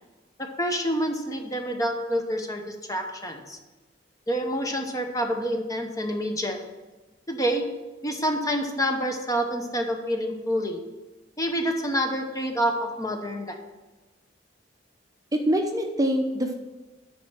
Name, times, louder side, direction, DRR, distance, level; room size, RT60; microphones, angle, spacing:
voice 1, 0.6-3.6 4.3-6.6 7.3-7.7 8.0-10.8 11.4-13.6, equal, 20° left, 4 dB, 0.9 m, -27 dB
voice 2, 15.3-16.5, equal, 20° right, 3 dB, 0.7 m, -24 dB
9.9 x 4.3 x 6.1 m, 1.2 s
head